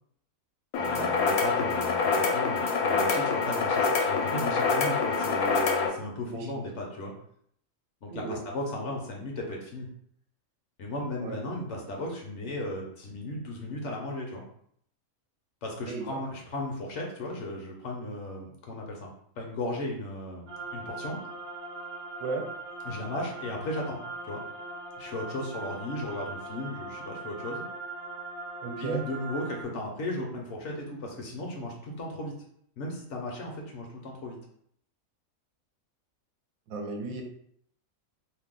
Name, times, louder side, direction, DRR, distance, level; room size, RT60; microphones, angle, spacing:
sound 1, 0.7-5.9, left 4 dB, 85° left, 1.1 m, -26 dB
voice 1, 0.8-7.1 8.0-9.9 10.8-14.4 15.6-19.1 19.4-21.2 22.8-24.4 25.0-27.6 28.8-32.3 32.8-34.4, left 1 dB, 65° left, 0 dB, 0.9 m, -36 dB
voice 2, 8.1-8.4 11.2-11.4 15.9-16.2 22.2-22.4 28.6-29.0 36.7-37.2, right 3 dB, 80° right, 3 dB, 1.0 m, -34 dB
sound 2, 20.5-29.6, right 2 dB, 40° right, 0.8 m, -40 dB
2.6 x 2.2 x 3.5 m, 0.67 s
omnidirectional pair, 1.5 m